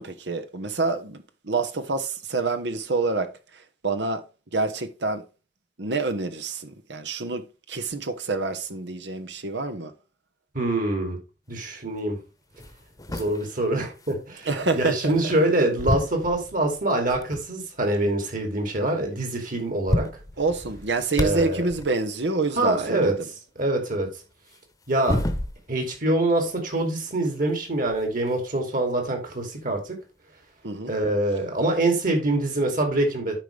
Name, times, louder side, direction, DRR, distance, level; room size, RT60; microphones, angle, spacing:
voice 1, 0.0-3.3 3.8-4.2 4.5-5.2 5.8-9.9 14.5-15.3 20.4-23.1 30.6-30.9, right 3 dB, 85° right, 1.2 m, -27 dB
voice 2, 10.5-11.2 11.5-12.2 13.1-20.1 21.2-21.7 22.6-23.1 23.6-24.1 24.9-25.2 25.7-29.9 30.9-33.4, right 1 dB, 55° right, 2.8 m, -25 dB
sound 1, 12.0-12.1 12.5-15.4 15.8-17.5 18.0-18.1 18.4-18.5 19.3-19.4 19.6-22.0 24.4-25.9 26.3-28.5 29.6-29.7 30.7-30.8, left 1 dB, 20° left, 0.9 m, -32 dB
12.0 x 5.1 x 3.4 m
head